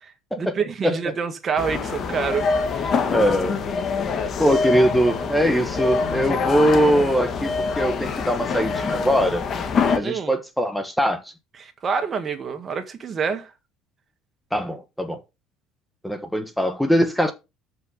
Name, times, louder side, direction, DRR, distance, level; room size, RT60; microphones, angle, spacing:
voice 1, 0.0-3.0 4.5-4.6 10.0-10.4 11.6-13.5, right 6 dB, 35° right, 1.8 m, -27 dB
voice 2, 0.8-1.1 3.1-3.6 4.4-9.4 9.9-11.3 14.5-15.2 16.0-17.3, equal, ahead, 1.2 m, -21 dB
sound 1, 1.6-10.0, left 5 dB, 40° left, 1.8 m, -25 dB
7.6 x 5.8 x 5.6 m
supercardioid pair, 105°, 0 cm